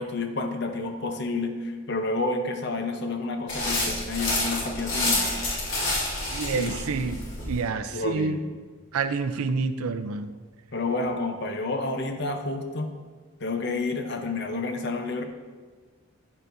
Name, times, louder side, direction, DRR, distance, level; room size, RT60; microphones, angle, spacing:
voice 1, 0.0-5.5 6.5-6.8 7.9-8.4 10.7-13.0 13.4-15.2, left 3 dB, 50° left, 5 dB, 0.7 m, -30 dB
sound 1, 3.5-7.6, left 2 dB, 70° left, 2.5 m, -28 dB
voice 2, 6.3-8.4 8.9-10.3, right 4 dB, 85° right, 11 dB, 0.5 m, -28 dB
10.0 x 6.8 x 2.6 m, 1.4 s
head